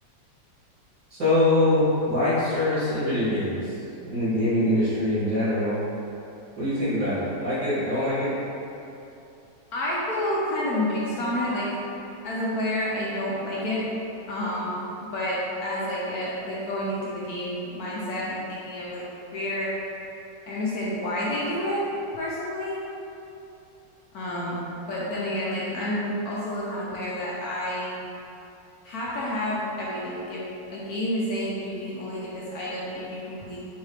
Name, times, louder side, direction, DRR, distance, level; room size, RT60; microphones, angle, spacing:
voice 1, 1.1-3.7 4.0-5.7 6.6-8.3, left 1 dB, 50° right, -12 dB, 1.8 m, -23 dB
voice 2, 9.7-11.7 12.2-13.8 14.3-14.8 15.1-19.0 19.3-19.7 20.5-21.8 22.1-22.8 24.1-24.6 24.9-28.0 28.8-30.4 30.7-33.7, left 1 dB, 70° left, -6 dB, 1.0 m, -29 dB
5.5 x 2.7 x 3.2 m, 2.8 s
omnidirectional pair, 2.0 m